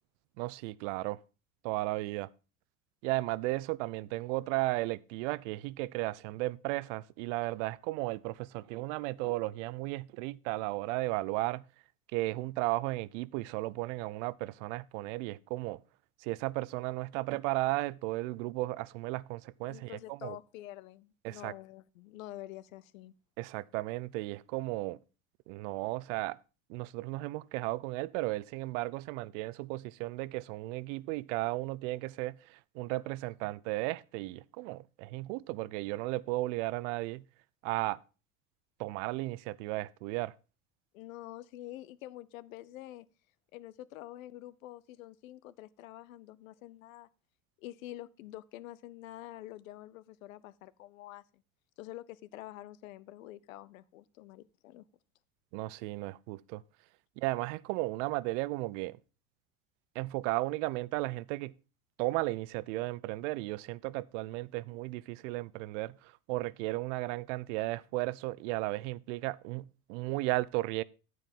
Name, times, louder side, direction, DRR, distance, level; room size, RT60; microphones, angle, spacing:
voice 1, 0.4-1.2 1.6-2.3 3.0-11.6 12.1-15.8 16.2-20.4 21.2-21.5 23.4-25.0 25.5-26.4 26.7-37.2 37.6-38.0 38.8-40.3 55.5-56.6 57.2-59.0 59.9-61.5 62.0-70.8, right 20 dB, 60° right, 0.6 m, -35 dB
voice 2, 19.7-23.1 40.9-43.1 43.5-47.1 47.6-51.4 51.8-54.8, left 15 dB, 75° left, 0.7 m, -47 dB
13.5 x 4.8 x 5.3 m
hypercardioid pair, 80°, 41 cm